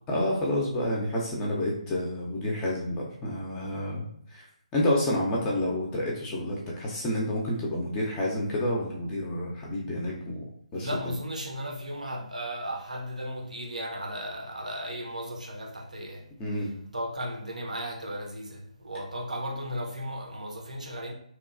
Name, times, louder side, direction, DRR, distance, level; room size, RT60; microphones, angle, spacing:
voice 1, 0.1-4.5 4.7-10.4 10.7-10.9 16.4-16.7, left 1 dB, 15° left, 0.5 m, -29 dB
voice 2, 10.7-16.3 16.9-21.1, equal, 80° right, 0.7 m, -35 dB
2.9 x 2.2 x 2.4 m
figure-of-eight pair, 145°, 4 cm